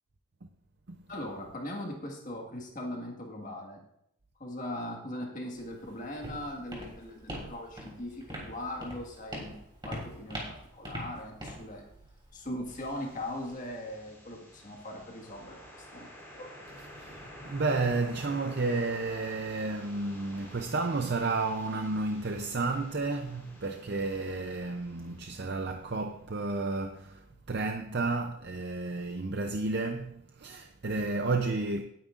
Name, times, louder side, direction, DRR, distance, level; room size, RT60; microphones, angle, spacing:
voice 1, 1.1-3.8 4.4-9.6 9.8-11.8 12.3-16.1 16.4-16.6, left 1 dB, 35° left, 1.8 m, -40 dB
Walk footsteps, 5.5-13.5, equal, 20° right, 3.2 m, -43 dB
sound 1, 12.6-26.5, equal, 10° left, 3.4 m, -51 dB
voice 2, 17.0-31.8, right 3 dB, 50° right, 0.6 m, -32 dB
18.0 x 9.2 x 2.6 m
head